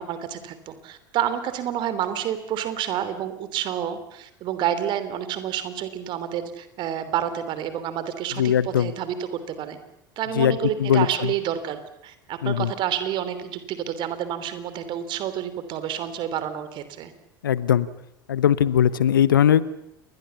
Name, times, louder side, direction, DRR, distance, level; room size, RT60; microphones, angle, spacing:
voice 1, 0.0-9.8 10.2-17.1, right 10 dB, 45° right, 12 dB, 3.2 m, -29 dB
voice 2, 8.3-8.9 10.4-11.3 12.4-12.7 17.4-17.9 18.3-19.6, left 9 dB, 75° left, 18 dB, 1.0 m, -20 dB
29.0 x 21.5 x 7.1 m, 0.81 s
figure-of-eight pair, 75°, 11 cm